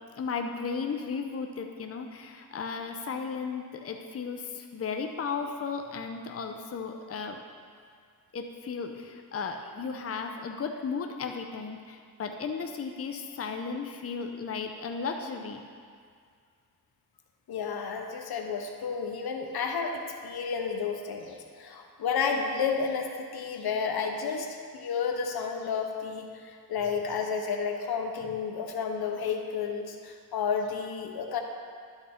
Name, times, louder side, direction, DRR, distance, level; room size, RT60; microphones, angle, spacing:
voice 1, 0.2-7.4 8.3-15.6, left 5 dB, 40° left, 5 dB, 0.7 m, -35 dB
voice 2, 17.5-31.4, left 6 dB, 75° left, 3 dB, 0.9 m, -31 dB
11.5 x 5.9 x 4.3 m, 2.1 s
cardioid pair, 70°, 37 cm